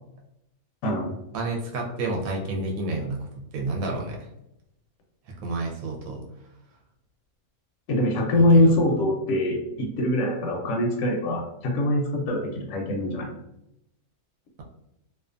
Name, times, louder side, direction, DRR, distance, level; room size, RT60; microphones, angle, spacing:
voice 1, 0.8-1.1 7.9-13.3, left 1 dB, 70° left, 1 dB, 0.8 m, -23 dB
voice 2, 1.3-3.3 3.5-4.3 5.4-6.2 8.4-8.7, right 2 dB, 75° right, 0 dB, 1.0 m, -30 dB
2.5 x 2.3 x 2.4 m, 0.83 s
omnidirectional pair, 1.6 m